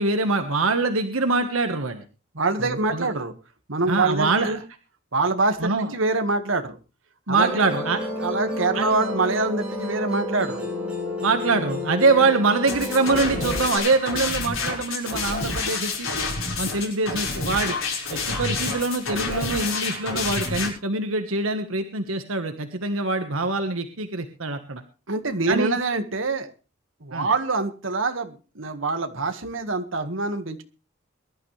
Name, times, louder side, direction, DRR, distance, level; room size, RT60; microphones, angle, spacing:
voice 1, 0.0-2.0 2.6-3.1 3.9-4.5 5.6-5.9 7.3-8.0 8.7-8.9 11.2-16.1 16.6-17.8 18.1-24.8 25.5-25.8 27.1-27.3, right 3 dB, 85° right, 7 dB, 1.5 m, -24 dB
voice 2, 2.3-3.3 3.7-4.6 5.1-6.8 7.3-7.7 8.2-10.7 25.1-26.5 27.0-30.6, right 3 dB, 70° right, 7 dB, 1.8 m, -25 dB
Musical instrument, 7.4-13.8, left 1 dB, 5° right, 6.9 m, -30 dB
sound 1, 12.7-20.7, left 4 dB, 80° left, 5.1 m, -28 dB
22.5 x 12.0 x 3.4 m, 0.33 s
head